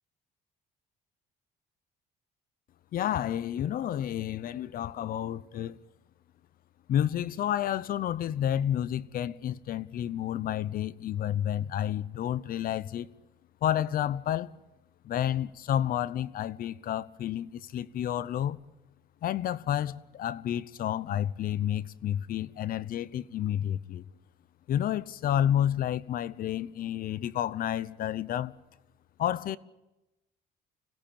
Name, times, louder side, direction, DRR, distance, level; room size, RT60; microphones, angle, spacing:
voice 1, 2.9-5.8 6.9-13.1 13.6-14.6 15.0-18.6 19.2-24.0 24.7-28.5 29.2-29.6, left 11 dB, 60° left, 0.8 m, -30 dB
26.0 x 17.5 x 8.7 m
cardioid pair, 110°, 17 cm